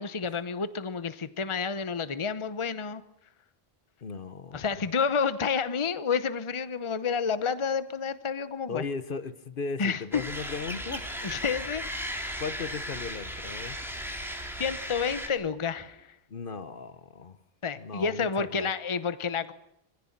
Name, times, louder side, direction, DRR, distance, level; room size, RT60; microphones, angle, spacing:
voice 1, 0.0-3.0 4.5-8.8 9.8-10.2 11.2-11.8 14.6-16.1 17.6-19.5, left 6 dB, 30° left, 13 dB, 0.9 m, -29 dB
voice 2, 4.0-4.9 8.7-11.3 12.4-14.1 16.3-17.4 17.8-18.7, left 4 dB, 55° left, 13 dB, 1.1 m, -37 dB
sound 1, 10.1-15.3, equal, ahead, 3.5 m, -36 dB
sound 2, 10.7-16.0, right 2 dB, 45° right, 3.8 m, -52 dB
24.5 x 16.0 x 8.7 m, 0.81 s
omnidirectional pair, 1.1 m